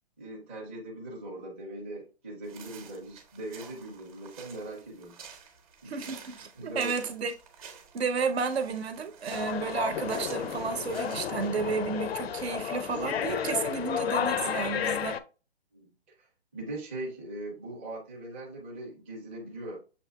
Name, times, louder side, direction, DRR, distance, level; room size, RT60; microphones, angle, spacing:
voice 1, 0.2-5.2 5.8-5.9 6.6-6.9 15.7-15.9 16.2-16.3 16.5-19.8, right 1 dB, 10° right, 0.5 m, -40 dB
sound 1, 2.4-11.5, right 6 dB, 35° right, 0.9 m, -50 dB
voice 2, 5.9-7.3 7.6-7.7 7.9-15.2, right 5 dB, 75° right, 0.9 m, -32 dB
sound 2, 9.3-15.2, left 8 dB, 70° left, 0.5 m, -32 dB
6.6 x 2.9 x 2.3 m
hypercardioid pair, 160°, 32 cm